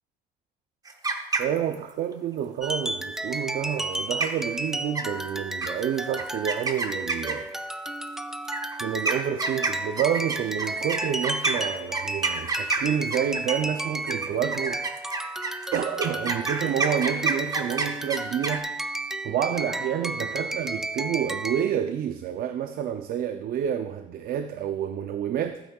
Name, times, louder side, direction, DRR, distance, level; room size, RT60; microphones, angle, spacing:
sound 1, 0.8-1.9 3.8-3.9 4.2-4.5 4.9-5.3 5.6-5.7 6.2-7.6 8.4-13.7 14.1-18.6, right 3 dB, 20° right, 1.0 m, -28 dB
voice 1, 1.4-7.5 8.8-14.8 15.7-18.7 19.2-25.6, right 9 dB, 60° right, 9 dB, 0.5 m, -29 dB
sound 2, 2.6-21.7, right 1 dB, 5° right, 0.4 m, -33 dB
15.0 x 9.0 x 2.3 m, 0.97 s
cardioid pair, 110°, 17 cm